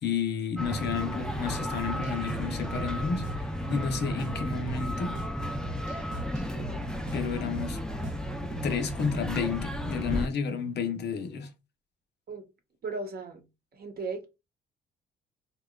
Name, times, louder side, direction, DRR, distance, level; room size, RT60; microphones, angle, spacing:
voice 1, 0.0-5.2 7.1-7.8 8.6-11.5, left 6 dB, 60° left, 0.7 m, -31 dB
sound 1, 0.6-10.3, equal, 5° left, 0.4 m, -33 dB
sound 2, 1.8-9.4, right 1 dB, 75° right, 0.6 m, -42 dB
voice 2, 12.8-13.4 13.7-14.3, right 3 dB, 50° right, 0.9 m, -36 dB
2.8 x 2.2 x 2.2 m
cardioid pair, 90°, 20 cm